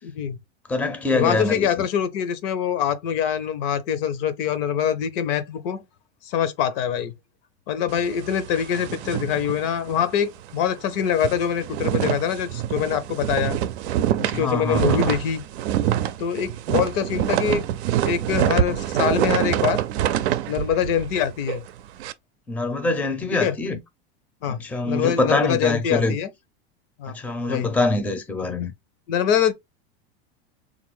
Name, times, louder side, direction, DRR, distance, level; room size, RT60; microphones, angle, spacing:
voice 1, 0.0-0.4 1.1-5.8 6.2-7.1 7.7-13.6 14.2-15.4 16.2-17.7 18.0-19.8 20.5-21.6 23.3-23.5 24.4-26.3 27.0-27.1 27.5-27.7 29.1-29.5, left 8 dB, 60° left, 0.7 m, -24 dB
voice 2, 0.7-1.8 14.3-15.1 22.5-23.8 24.5-26.1 27.1-28.7, left 2 dB, 5° left, 0.5 m, -24 dB
sound 1, 7.9-10.2 10.5-10.6 11.0-22.1, right 12 dB, 80° right, 0.5 m, -25 dB
3.7 x 2.5 x 3.0 m
supercardioid pair, 115°, 32 cm